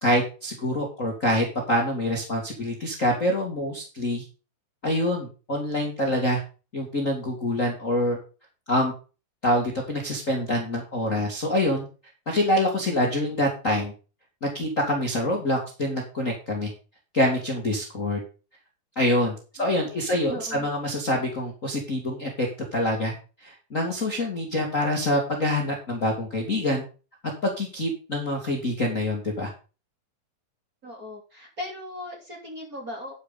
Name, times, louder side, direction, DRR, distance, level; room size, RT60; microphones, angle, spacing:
voice 1, 0.0-4.2 4.8-6.4 6.7-8.2 8.7-8.9 9.4-11.8 12.3-13.9 14.4-16.7 17.1-18.2 19.0-23.1 23.4-26.8 27.4-29.5, left 1 dB, 25° left, -1 dB, 2.0 m, -25 dB
voice 2, 19.6-20.7 30.8-33.1, left 1 dB, 25° right, 0 dB, 3.2 m, -38 dB
10.0 x 9.7 x 4.1 m, 0.34 s
omnidirectional pair, 4.2 m